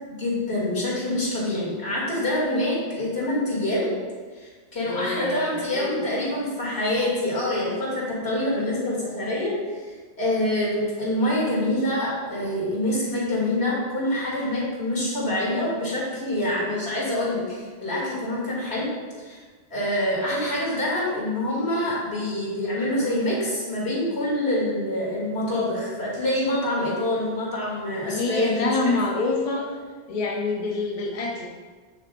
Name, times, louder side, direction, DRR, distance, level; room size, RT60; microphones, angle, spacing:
voice 1, 0.1-3.9 4.3-9.5 10.2-18.9 19.2-19.4 19.7-28.8 29.2-29.4, left 1 dB, 60° left, -6 dB, 3.0 m, -26 dB
voice 2, 4.8-6.1 28.1-29.8 30.1-31.5, left 3 dB, 35° left, 0 dB, 0.7 m, -27 dB
8.8 x 7.9 x 2.6 m, 1.5 s
omnidirectional pair, 1.2 m